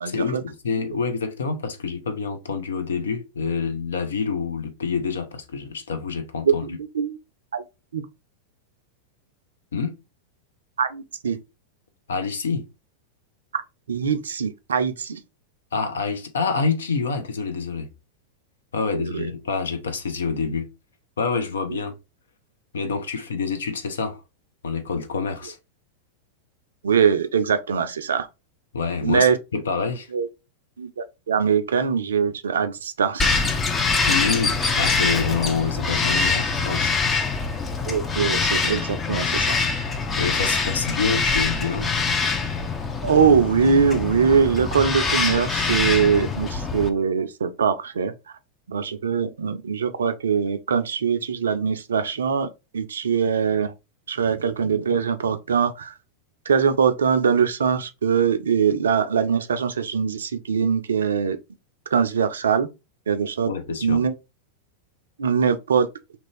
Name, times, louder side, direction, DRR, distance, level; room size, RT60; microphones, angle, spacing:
voice 1, 0.0-6.7 9.7-10.0 12.1-12.7 15.7-17.9 18.7-20.7 21.2-21.9 22.7-24.2 24.6-25.6 28.7-30.1 34.1-36.9 40.1-41.9 63.5-64.0, left 5 dB, 65° left, 0.6 m, -27 dB
voice 2, 6.4-7.2 7.5-7.6 7.9-8.0 10.8-11.4 13.9-15.2 18.9-19.3 21.7-21.8 26.8-28.3 29.0-29.4 30.1-30.3 30.8-33.4 37.9-39.6 43.0-48.1 48.7-53.7 54.1-55.9 56.5-61.4 61.9-62.7 63.1-63.5 63.8-64.1 65.2-65.9, right 6 dB, 65° right, 0.4 m, -22 dB
Bird vocalization bird call bird song, 33.2-46.9, left 4 dB, 20° left, 0.5 m, -24 dB
2.9 x 2.5 x 3.1 m
figure-of-eight pair, 90°, 0 cm